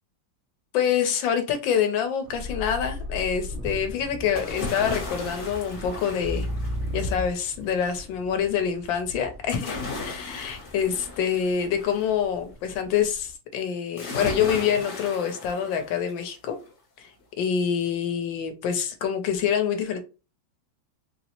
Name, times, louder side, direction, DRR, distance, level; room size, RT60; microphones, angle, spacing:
voice 1, 0.7-6.5 6.9-16.6 17.0-17.1 17.4-20.0, left 8 dB, 75° left, 1.4 m, -26 dB
sound 1, 2.2-7.3, left 1 dB, 70° right, 1.2 m, -34 dB
sound 2, 3.5-13.4, left 1 dB, 30° right, 1.2 m, -44 dB
sound 3, 4.4-7.2 9.5-12.1 14.0-16.3 16.7-16.8, left 3 dB, 45° left, 1.1 m, -36 dB
4.1 x 2.0 x 2.8 m
omnidirectional pair, 2.2 m